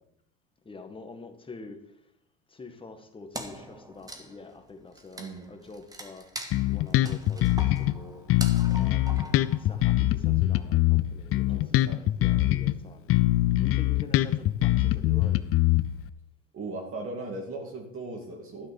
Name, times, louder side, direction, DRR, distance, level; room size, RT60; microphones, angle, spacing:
voice 1, 0.7-2.0 2.5-6.3 6.7-8.2 8.8-9.2 9.6-11.7 12.2-13.1 13.6-15.4, left 3 dB, 15° left, 5 dB, 1.7 m, -46 dB
Wood, 3.3-10.1, right 1 dB, 10° right, 1.5 m, -43 dB
voice 2, 5.2-5.5 9.1-9.4 11.5-12.0 16.5-18.7, right 2 dB, 35° right, 1 dB, 2.4 m, -38 dB
Bass guitar, 6.5-8.0 8.3-12.8 13.1-16.1, left 16 dB, 40° left, 0.6 m, -23 dB
12.5 x 7.5 x 5.3 m, 0.77 s
hypercardioid pair, 100°, 36 cm